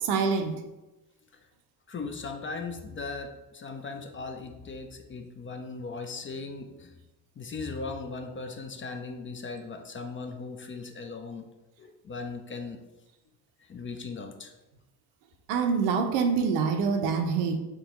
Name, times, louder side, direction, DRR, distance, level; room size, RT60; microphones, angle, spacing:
voice 1, 0.0-0.5 15.5-17.6, right 5 dB, 80° right, 5 dB, 0.6 m, -25 dB
voice 2, 1.9-6.9 7.4-11.5 11.8-12.8 13.7-14.5, left 4 dB, 25° left, 5 dB, 0.4 m, -38 dB
3.6 x 3.0 x 3.0 m, 1.0 s
hypercardioid pair, 50°, 48 cm